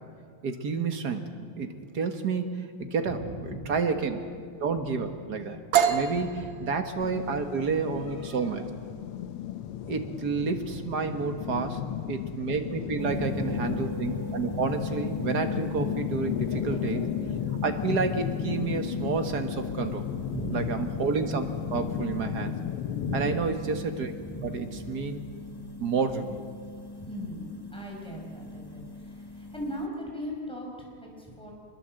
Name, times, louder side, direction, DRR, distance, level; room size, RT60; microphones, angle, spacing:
voice 1, 0.4-1.7 1.9-4.2 4.6-5.6 5.9-8.7 9.9-11.8 12.1-17.0 17.6-20.1 20.5-22.6 23.1-24.1 24.4-25.3 25.8-26.4, right 4 dB, 50° right, 7 dB, 1.9 m, -30 dB
voice 2, 3.1-3.8 6.2-6.5 7.5-8.5 9.8-10.0 11.6-12.0 12.9-13.6 16.6-16.8 20.0-20.6 21.5-22.0 23.0-23.4 24.2-24.9 26.9-31.5, equal, ahead, -1 dB, 5.8 m, -39 dB
sound 1, 5.7-13.4, right 8 dB, 65° right, 1.9 m, -32 dB
sound 2, 7.0-23.4, left 11 dB, 80° left, 1.7 m, -34 dB
sound 3, 13.0-29.9, left 1 dB, 20° left, 0.7 m, -40 dB
25.5 x 21.0 x 7.8 m, 2.2 s
omnidirectional pair, 2.4 m